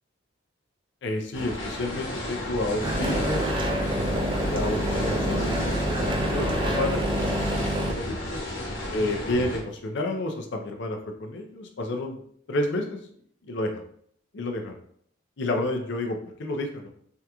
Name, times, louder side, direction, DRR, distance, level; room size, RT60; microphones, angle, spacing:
voice 1, 1.0-3.5 3.9-8.4 8.9-12.2 12.5-13.0 13.4-13.8 14.3-14.7 15.4-16.9, left 1 dB, 65° left, 3 dB, 0.5 m, -30 dB
sound 1, 1.3-9.6, left 1 dB, 80° left, 0.9 m, -33 dB
sound 2, 2.8-7.9, right 1 dB, 25° right, 0.3 m, -27 dB
3.5 x 2.3 x 2.9 m, 0.64 s
head